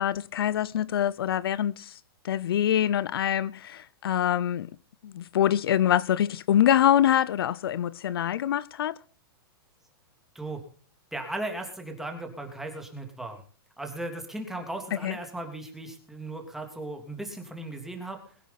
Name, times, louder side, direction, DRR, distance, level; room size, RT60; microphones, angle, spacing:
voice 1, 0.0-1.9 2.2-4.7 5.0-8.9 15.0-15.2, left 10 dB, 70° left, 0.7 m, -25 dB
voice 2, 11.1-13.4 13.8-18.2, right 2 dB, 5° right, 3.0 m, -37 dB
22.0 x 10.0 x 4.1 m
hypercardioid pair, 145°, 13 cm